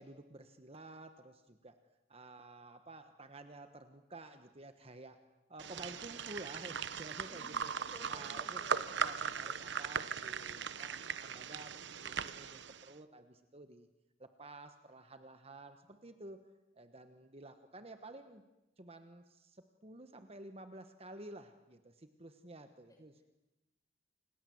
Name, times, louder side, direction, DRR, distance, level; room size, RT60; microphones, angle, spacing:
voice 1, 0.0-1.7 2.1-5.2 5.5-7.7 8.1-8.6 9.0-13.9 14.2-16.4 16.8-18.4 18.8-23.2, right 2 dB, 30° right, 8 dB, 1.3 m, -52 dB
sound 1, 5.6-12.9, right 6 dB, 65° right, 0.9 m, -39 dB
voice 2, 7.3-8.9 22.9-23.0, left 1 dB, 20° left, 2 dB, 6.8 m, -56 dB
29.0 x 26.5 x 7.8 m, 1.0 s
head